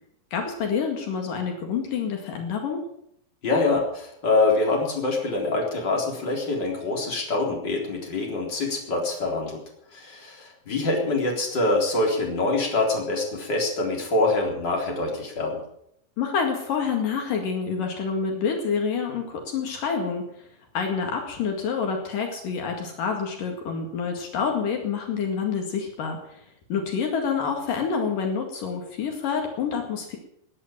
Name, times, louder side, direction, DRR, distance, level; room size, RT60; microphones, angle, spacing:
voice 1, 0.3-2.8 16.2-20.2 20.8-26.4 26.7-30.2, left 6 dB, 75° left, 2 dB, 3.7 m, -27 dB
voice 2, 3.4-9.6 9.9-15.6, left 2 dB, 30° left, -1 dB, 4.3 m, -25 dB
19.0 x 9.9 x 7.5 m, 0.73 s
omnidirectional pair, 3.9 m